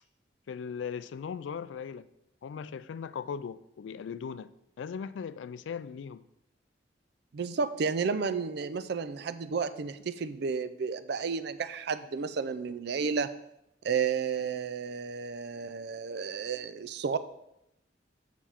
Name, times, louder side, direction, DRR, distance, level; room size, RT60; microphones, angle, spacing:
voice 1, 0.5-2.1 2.4-4.5 4.8-6.2, left 6 dB, 85° left, 15 dB, 0.3 m, -38 dB
voice 2, 7.3-13.3 13.8-17.2, right 5 dB, 60° right, 13 dB, 0.4 m, -32 dB
6.9 x 5.8 x 4.3 m, 0.83 s
head